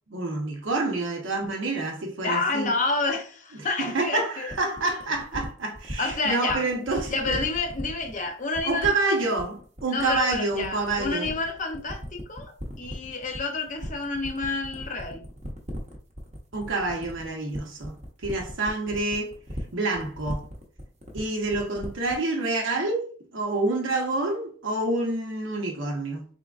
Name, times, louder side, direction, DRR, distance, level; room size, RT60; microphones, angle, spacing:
voice 1, 0.1-2.7 3.8-7.4 8.6-11.3 16.5-19.3 19.7-20.5 21.1-23.1 23.3-26.2, right 2 dB, 80° right, 1.0 m, -28 dB
voice 2, 2.2-4.5 6.0-6.7 7.1-8.9 9.9-12.5 12.8-15.2, left 3 dB, 40° left, 0.6 m, -29 dB
sound 1, 4.5-22.2, equal, 35° right, 0.7 m, -37 dB
3.8 x 3.4 x 2.4 m
head